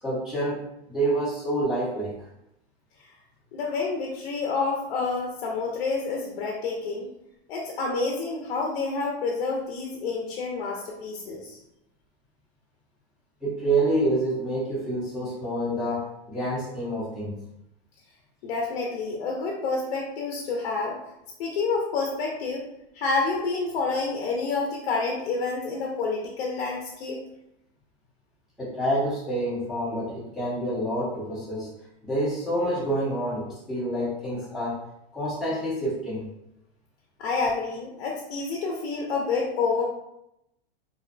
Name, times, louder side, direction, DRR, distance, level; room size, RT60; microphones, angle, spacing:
voice 1, 0.0-2.1 13.4-17.3 28.6-31.7 32.0-34.8 35.1-36.3, right 1 dB, ahead, -10 dB, 0.5 m, -27 dB
voice 2, 3.5-7.1 7.5-11.6 18.4-21.0 21.4-22.7 22.9-27.2 37.2-39.9, left 4 dB, 65° left, -1 dB, 0.5 m, -28 dB
2.5 x 2.1 x 2.4 m, 0.83 s
supercardioid pair, 150°, 31 cm